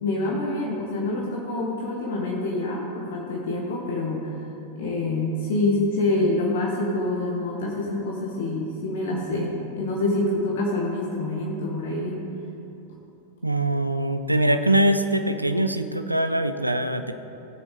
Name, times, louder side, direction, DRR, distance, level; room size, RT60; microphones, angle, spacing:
voice 1, 0.0-4.4 4.7-12.2, left 2 dB, 55° left, -2 dB, 1.4 m, -26 dB
voice 2, 13.4-17.1, right 1 dB, 85° right, 9 dB, 0.5 m, -23 dB
17.5 x 6.5 x 3.2 m, 2.8 s
figure-of-eight pair, 90°, 0 cm